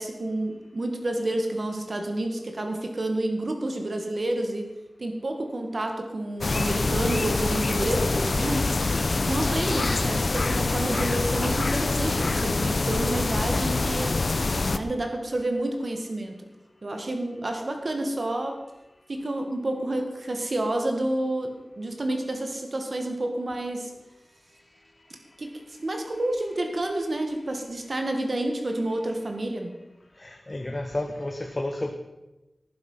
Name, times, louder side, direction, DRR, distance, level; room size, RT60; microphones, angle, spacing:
voice 1, 0.0-4.7 5.0-8.7 9.3-14.2 14.7-16.3 16.8-18.5 19.1-23.9 25.4-29.8, right 1 dB, 55° right, 4 dB, 2.0 m, -29 dB
sound 1, 6.4-14.8, left 3 dB, 55° left, 0.8 m, -25 dB
voice 2, 30.2-31.9, left 1 dB, 30° left, 5 dB, 1.2 m, -31 dB
18.5 x 10.5 x 5.7 m, 1.0 s
wide cardioid pair, 85°, 0 cm